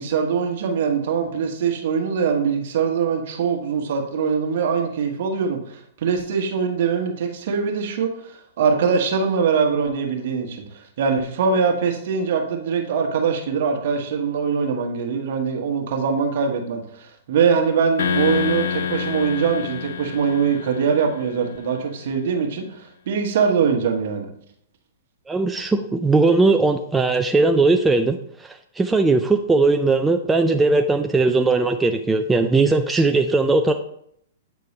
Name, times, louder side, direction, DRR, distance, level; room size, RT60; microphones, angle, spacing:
voice 1, 0.0-24.3, right 6 dB, 60° right, 3 dB, 1.4 m, -22 dB
sound 1, 18.0-21.5, left 7 dB, 70° left, 0.6 m, -27 dB
voice 2, 25.3-33.7, right 3 dB, 10° right, 5 dB, 0.4 m, -19 dB
8.3 x 4.5 x 3.2 m, 0.70 s
hypercardioid pair, 125°, 0 cm